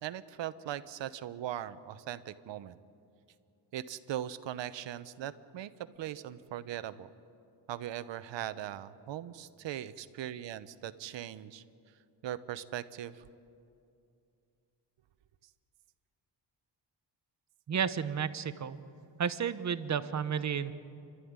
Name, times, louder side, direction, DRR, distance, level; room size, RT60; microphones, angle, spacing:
voice 1, 0.0-2.8 3.7-7.1 7.7-11.6 12.2-13.3, right 11 dB, 70° right, 13 dB, 1.0 m, -40 dB
voice 2, 17.7-18.8 19.2-20.7, right 7 dB, 35° right, 12 dB, 0.9 m, -32 dB
29.0 x 13.0 x 9.6 m, 2.6 s
cardioid pair, 120°, 45 cm